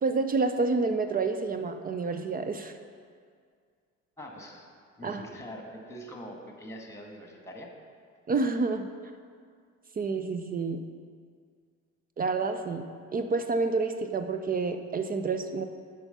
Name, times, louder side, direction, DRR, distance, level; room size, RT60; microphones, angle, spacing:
voice 1, 0.0-2.7 5.0-5.2 8.3-8.9 10.0-10.8 12.2-15.6, right 4 dB, 20° right, 8 dB, 0.5 m, -29 dB
voice 2, 4.2-4.7 5.0-7.7, equal, 5° left, 1 dB, 1.7 m, -43 dB
8.7 x 6.1 x 5.6 m, 2.1 s
figure-of-eight pair, 55°, 41 cm